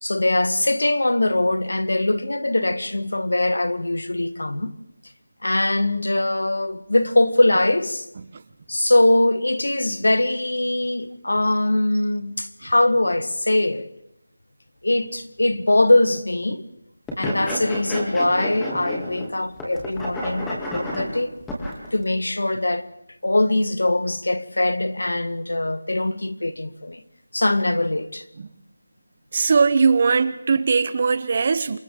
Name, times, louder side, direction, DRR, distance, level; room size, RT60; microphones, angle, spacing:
voice 1, 0.0-4.7 5.4-8.1 8.7-13.9 14.8-16.7 17.2-21.4 21.9-22.8 23.2-27.0 27.3-28.2, left 1 dB, 85° left, 1.5 m, -22 dB
sound 1, 17.1-19.3 19.6-21.9, equal, 5° left, 2.6 m, -30 dB
voice 2, 29.3-31.8, right 5 dB, 35° right, 0.9 m, -20 dB
28.0 x 25.0 x 3.8 m
figure-of-eight pair, 170°, 0 cm